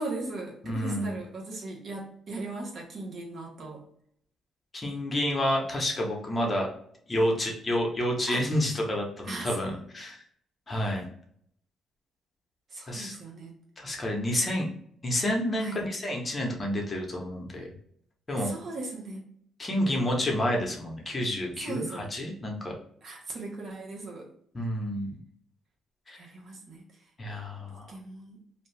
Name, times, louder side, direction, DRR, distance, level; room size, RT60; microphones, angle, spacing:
voice 1, 0.0-3.8 8.3-8.4 9.2-9.6 12.7-13.6 15.6-15.8 18.3-19.3 21.6-22.1 23.0-24.3 26.2-26.9 27.9-28.4, right 2 dB, 55° right, -1 dB, 1.0 m, -38 dB
voice 2, 0.6-1.1 4.7-6.7 7.1-10.2 10.7-11.1 12.9-13.2 13.8-14.7 15.0-17.7 18.3-18.5 19.6-22.7 24.5-25.2 26.1-26.2 27.2-28.0, left 1 dB, 30° left, 0 dB, 0.8 m, -29 dB
2.6 x 2.3 x 3.2 m, 0.66 s
cardioid pair, 90°, 0 cm